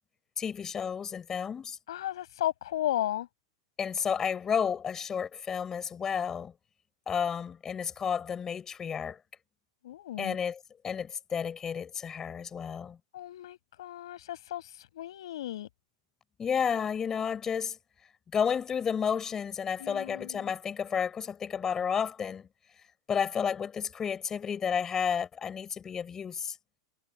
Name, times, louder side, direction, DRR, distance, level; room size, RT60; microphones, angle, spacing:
voice 1, 0.4-1.8 3.8-6.5 7.1-9.2 10.2-10.6 10.8-13.0 16.4-17.8 18.3-22.5 23.1-26.5, left 7 dB, 20° left, 6.6 m, -31 dB
voice 2, 1.9-3.3 9.8-10.4 13.1-15.7 19.8-20.5, left 13 dB, 75° left, 7.8 m, -35 dB
supercardioid pair, 145°, 3 cm